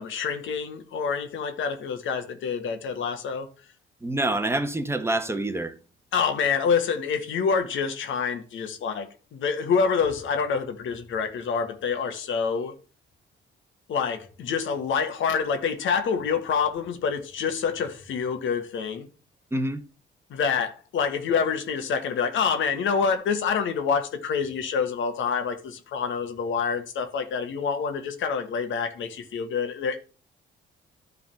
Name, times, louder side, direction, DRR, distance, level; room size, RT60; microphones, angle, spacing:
voice 1, 0.0-3.5 6.1-12.7 13.9-19.1 20.3-30.0, left 6 dB, 75° left, 1.5 m, -27 dB
voice 2, 4.0-5.7 19.5-19.8, right 2 dB, 15° right, 1.1 m, -26 dB
10.5 x 4.0 x 6.9 m
cardioid pair, 90°, 20 cm